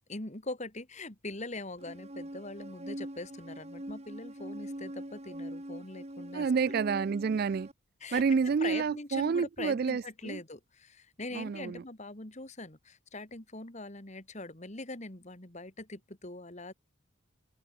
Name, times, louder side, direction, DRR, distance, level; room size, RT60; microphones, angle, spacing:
voice 1, 0.0-6.5 8.0-16.7, left 2 dB, 35° left, 2.3 m, -42 dB
sound 1, 1.8-7.7, right 1 dB, 30° right, 2.3 m, -43 dB
voice 2, 6.3-7.7 8.1-10.4 11.3-11.8, right 5 dB, 45° right, 0.3 m, -29 dB
head